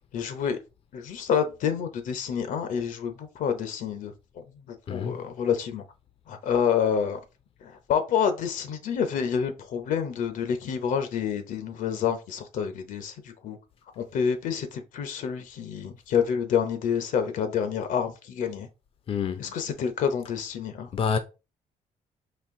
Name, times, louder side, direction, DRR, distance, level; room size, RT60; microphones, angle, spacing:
voice 1, 0.1-0.6 0.9-5.8 6.3-7.2 7.6-13.6 14.0-18.7 19.4-20.9, left 7 dB, 80° left, 0.8 m, -28 dB
voice 2, 4.9-5.2 19.1-19.5 20.9-21.2, left 6 dB, 45° left, 0.5 m, -28 dB
4.3 x 2.5 x 3.6 m
cardioid pair, 90°, 13 cm